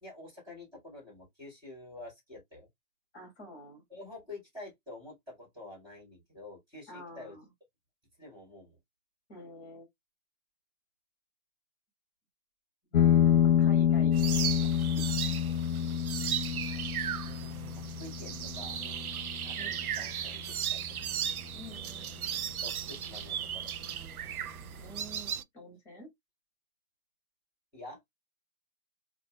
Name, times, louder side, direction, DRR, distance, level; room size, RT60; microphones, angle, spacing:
voice 1, 0.0-2.7 3.9-7.4 8.2-8.8 12.9-13.2 16.7-17.4 17.7-18.8 19.4-21.2 22.6-23.7 27.7-28.0, left 2 dB, 10° right, 2.6 m, -48 dB
voice 2, 3.1-3.8 6.9-7.4 9.3-9.9 12.9-13.1 13.4-14.2 14.6-15.4 18.2-18.6 19.6-19.9 21.5-22.4 24.8-26.1, equal, 15° left, 2.5 m, -49 dB
sound 1, 12.9-22.0, left 9 dB, 60° left, 0.6 m, -28 dB
sound 2, 14.1-25.4, right 9 dB, 75° right, 0.5 m, -36 dB
4.4 x 2.6 x 2.4 m
hypercardioid pair, 155°, 44 cm